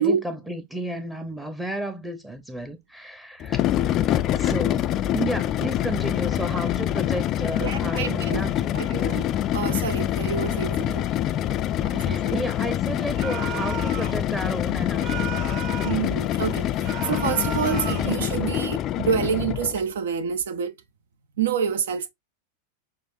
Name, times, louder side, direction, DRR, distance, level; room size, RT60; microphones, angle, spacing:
voice 1, 0.0-4.1 4.3-8.8 11.9-15.4, right 1 dB, 10° right, 0.8 m, -33 dB
sound 1, 3.4-19.8, left 12 dB, 35° left, 0.4 m, -25 dB
voice 2, 7.6-8.4 8.7-11.0 11.8-12.3 15.8-16.7 17.0-20.8 21.4-22.1, right 7 dB, 60° right, 0.7 m, -27 dB
sound 2, 13.2-14.2 15.0-16.1 16.8-18.2, right 9 dB, 45° right, 1.7 m, -34 dB
6.4 x 2.5 x 2.6 m
figure-of-eight pair, 90°, 0 cm